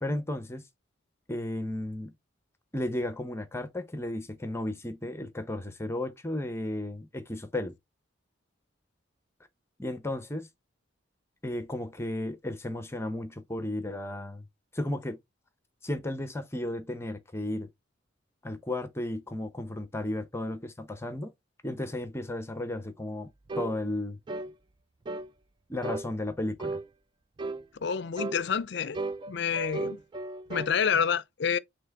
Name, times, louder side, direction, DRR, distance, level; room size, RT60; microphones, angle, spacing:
voice 1, 0.0-0.6 1.3-2.1 2.7-7.7 9.8-10.5 11.4-14.4 14.7-15.2 15.8-17.7 18.4-21.3 21.6-23.3 23.6-24.2 25.7-26.8, left 1 dB, 15° left, 0.7 m, -34 dB
sound 1, 23.5-23.8 24.3-24.5 25.1-25.3 25.8-26.1 26.6-26.9 27.4-27.6 28.2-28.4 28.9-30.7, right 3 dB, 25° right, 0.3 m, -35 dB
voice 2, 27.8-29.0 29.3-30.0 30.5-31.6, left 7 dB, 60° left, 0.5 m, -28 dB
6.0 x 3.4 x 4.6 m
head